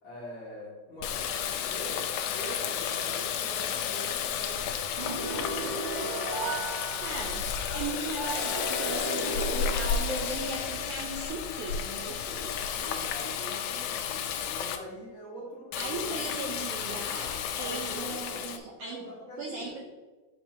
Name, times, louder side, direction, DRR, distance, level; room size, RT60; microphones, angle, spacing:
voice 1, 0.0-2.1 2.3-4.8 5.0-5.9 11.8-17.1 17.6-18.4 18.8-19.7, equal, 45° left, -5 dB, 2.1 m, -44 dB
Water tap faucet, 1.0-14.8 15.7-18.6, left 7 dB, 80° left, 2.0 m, -32 dB
sound 1, 5.0-7.6 8.2-10.7, right 2 dB, 50° right, 1.6 m, -36 dB
voice 2, 7.0-7.5 7.7-11.8 14.5-14.6 15.7-19.0 19.4-19.8, right 3 dB, 90° right, -1 dB, 1.3 m, -37 dB
6.9 x 6.0 x 2.8 m, 1.3 s
omnidirectional pair, 3.5 m